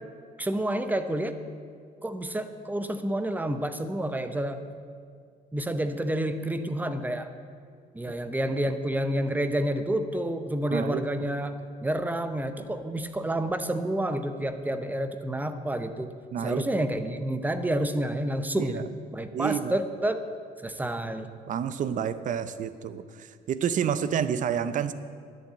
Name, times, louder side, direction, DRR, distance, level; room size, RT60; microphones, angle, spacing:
voice 1, 0.4-1.4 2.0-4.6 5.5-7.3 7.9-16.1 16.4-18.8 19.1-20.2 20.6-21.3, right 1 dB, 10° right, 9 dB, 0.8 m, -29 dB
voice 2, 10.7-11.1 16.3-16.7 18.5-18.8 19.3-19.7 21.5-24.9, right 8 dB, 50° right, 13 dB, 0.7 m, -29 dB
11.0 x 7.3 x 8.7 m, 2.1 s
cardioid pair, 110°, 17 cm